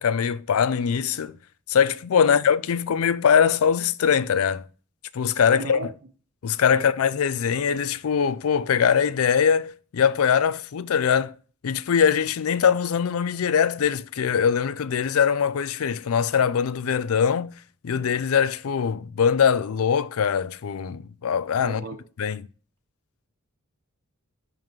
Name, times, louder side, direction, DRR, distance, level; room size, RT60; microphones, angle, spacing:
voice 1, 0.0-1.4 1.7-4.7 5.1-5.8 6.4-11.3 11.6-17.5 17.8-21.8 22.2-22.4, left 7 dB, 85° left, 0.4 m, -22 dB
voice 2, 5.5-5.9 6.7-6.9 21.6-22.0, right 2 dB, 60° right, 1.1 m, -35 dB
5.6 x 5.4 x 3.6 m
head